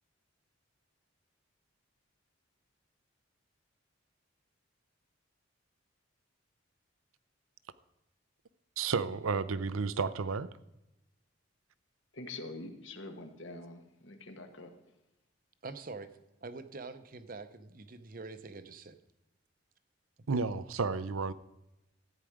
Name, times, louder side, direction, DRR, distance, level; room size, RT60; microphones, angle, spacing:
voice 1, 8.8-10.5 20.3-21.3, right 4 dB, 85° right, 0.6 m, -32 dB
voice 2, 12.1-14.7, left 2 dB, 60° left, 1.4 m, -45 dB
voice 3, 15.6-16.1 16.4-18.9 20.3-20.4, right 3 dB, 45° right, 0.7 m, -45 dB
13.5 x 9.1 x 4.9 m
head